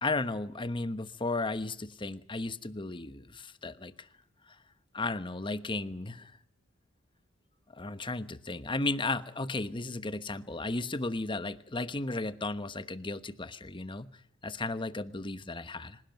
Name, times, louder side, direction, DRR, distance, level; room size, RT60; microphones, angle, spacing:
voice 1, 0.0-4.1 4.9-6.3 7.7-14.1 14.4-16.0, left 2 dB, 25° left, 12 dB, 1.1 m, -34 dB
26.0 x 17.0 x 9.2 m, 0.66 s
head